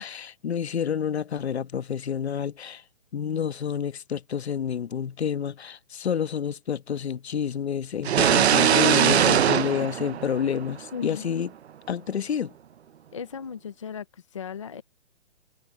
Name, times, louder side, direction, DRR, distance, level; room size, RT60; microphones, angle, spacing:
voice 1, 0.0-2.8 3.1-11.5 11.9-12.5, left 8 dB, 65° left, 1.3 m, -29 dB
sound 1, 8.0-10.9, right 9 dB, 65° right, 0.7 m, -21 dB
voice 2, 9.5-9.8 10.9-11.3 13.1-14.8, left 7 dB, 30° left, 0.6 m, -36 dB
hypercardioid pair, 175°, 34 cm